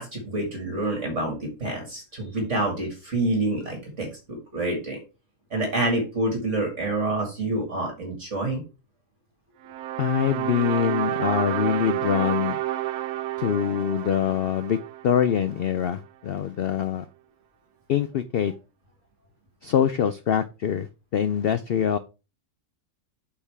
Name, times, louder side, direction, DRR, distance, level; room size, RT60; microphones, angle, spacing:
voice 1, 0.0-5.0 5.5-8.6, right 2 dB, 50° right, 1 dB, 2.4 m, -27 dB
sound 1, 9.6-15.9, right 14 dB, 90° right, 1.1 m, -30 dB
voice 2, 10.0-12.6 13.4-17.1 17.9-18.5 19.6-22.0, left 9 dB, 85° left, 11 dB, 0.5 m, -24 dB
8.3 x 5.5 x 3.5 m, 0.30 s
omnidirectional pair, 1.6 m